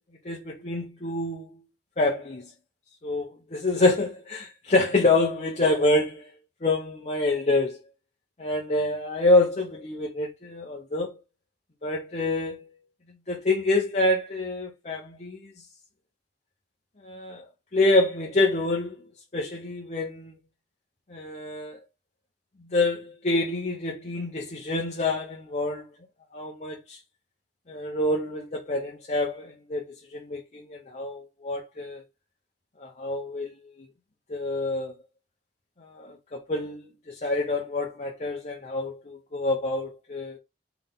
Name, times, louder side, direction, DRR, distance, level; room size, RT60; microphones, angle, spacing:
voice 1, 0.2-1.6 2.0-2.5 3.0-6.3 6.6-7.8 8.4-11.1 11.8-12.8 13.3-15.4 17.0-17.5 17.7-19.0 19.3-20.3 21.1-21.8 22.7-25.8 26.3-27.0 27.7-29.8 30.1-32.0 32.8-33.5 34.3-35.0 35.8-40.4, left 2 dB, 40° left, 0.9 m, -26 dB
3.9 x 3.4 x 4.0 m
head